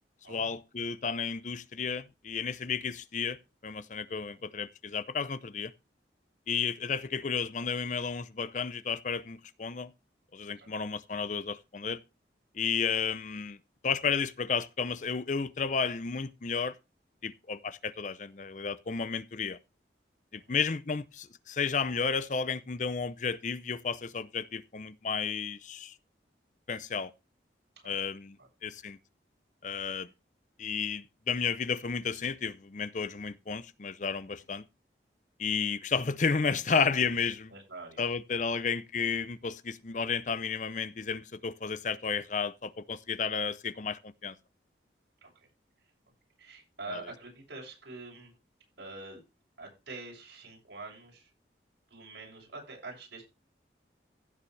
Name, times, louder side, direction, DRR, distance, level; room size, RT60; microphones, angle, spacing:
voice 1, 0.3-3.4 3.6-5.7 6.5-9.9 10.3-12.0 12.5-16.7 17.2-19.6 20.3-25.9 26.7-27.1 27.9-29.0 29.6-30.1 30.6-34.6 35.4-37.5 38.0-44.4 46.9-47.0, left 5 dB, 40° left, 0.6 m, -32 dB
voice 2, 37.5-38.0 38.5-38.6 45.2-45.5 46.4-48.3 48.8-49.2 49.6-51.3 51.9-53.2, right 3 dB, 85° right, 7.2 m, -45 dB
16.0 x 7.2 x 3.3 m
head